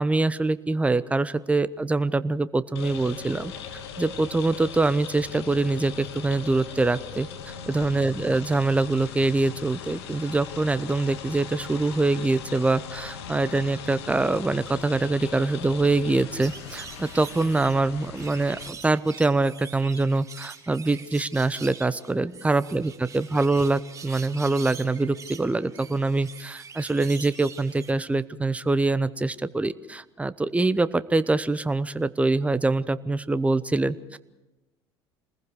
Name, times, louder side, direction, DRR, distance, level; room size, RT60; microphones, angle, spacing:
voice 1, 0.0-3.5 4.0-34.2, right 2 dB, 10° right, 15 dB, 0.8 m, -24 dB
sound 1, 2.8-18.7, left 7 dB, 75° left, 1.7 m, -40 dB
sound 2, 16.4-27.9, right 6 dB, 25° right, 4.7 m, -44 dB
27.0 x 20.5 x 4.9 m, 1.0 s
hypercardioid pair, 70°, 14 cm